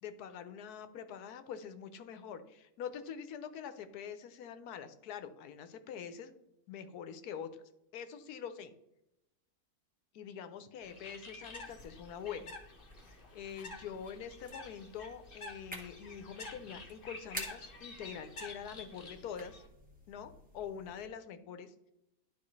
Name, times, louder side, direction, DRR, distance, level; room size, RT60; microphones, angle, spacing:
voice 1, 0.0-6.3 6.7-7.5 7.9-8.7 10.1-12.5 13.3-19.6 20.1-21.7, left 7 dB, 85° left, 10 dB, 1.2 m, -45 dB
Bird, 10.8-19.7, left 3 dB, 40° left, 1.2 m, -50 dB
sound 1, 11.4-21.1, equal, 5° right, 1.5 m, -52 dB
12.0 x 4.6 x 3.2 m, 0.87 s
omnidirectional pair, 1.6 m